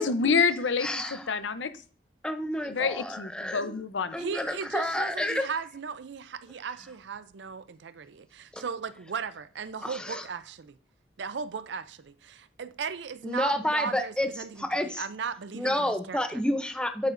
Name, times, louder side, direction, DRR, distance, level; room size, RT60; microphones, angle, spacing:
voice 1, 0.0-1.7 2.6-4.2, left 5 dB, 85° left, 0.7 m, -27 dB
voice 2, 0.8-1.3 2.2-3.7 4.1-5.5 8.5-8.6 9.8-10.2 13.2-14.3 14.6-15.0 15.5-17.1, left 1 dB, 5° left, 0.6 m, -30 dB
voice 3, 4.1-10.8 11.2-16.4, right 6 dB, 75° right, 0.5 m, -37 dB
9.3 x 8.8 x 2.6 m
head